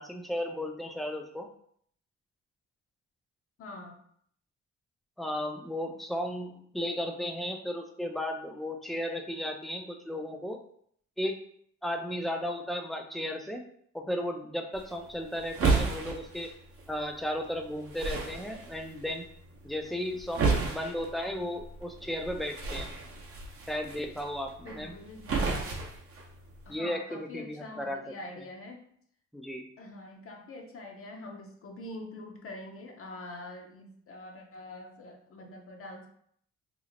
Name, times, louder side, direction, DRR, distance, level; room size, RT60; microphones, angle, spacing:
voice 1, 0.0-1.5 5.2-10.6 11.2-11.4 11.8-13.6 13.9-16.5 16.9-19.2 19.6-22.9 23.7-24.9 26.7-28.1 29.3-29.7, left 1 dB, ahead, 3 dB, 0.4 m, -35 dB
voice 2, 3.6-4.0 24.6-25.6 26.6-28.9 29.8-36.1, left 2 dB, 45° left, 1 dB, 0.6 m, -45 dB
sound 1, 14.7-26.8, right 4 dB, 45° right, 0.7 m, -34 dB
2.9 x 2.0 x 3.8 m, 0.65 s
cardioid pair, 90°, 30 cm